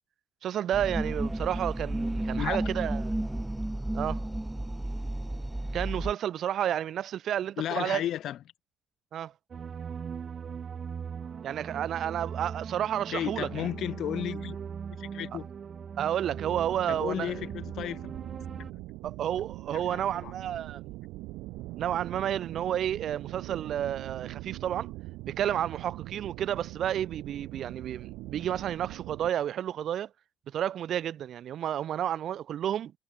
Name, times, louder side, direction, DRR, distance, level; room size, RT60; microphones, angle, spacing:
voice 1, 0.4-3.1 3.9-4.2 5.7-8.0 9.1-9.3 11.4-13.5 16.0-17.4 19.0-21.0 21.8-24.9 25.3-30.1 30.5-32.9, right 10 dB, 60° right, 3.9 m, -31 dB
sound 1, 0.7-6.1, right 1 dB, 10° right, 5.9 m, -32 dB
voice 2, 7.6-8.4 13.1-14.6 14.9-15.5 16.9-18.1 19.7-20.3, left 11 dB, 65° left, 6.6 m, -34 dB
sound 2, 9.5-18.7, right 7 dB, 45° right, 4.2 m, -39 dB
sound 3, 16.3-29.3, right 19 dB, 90° right, 2.1 m, -42 dB
cardioid pair, 100°, 0 cm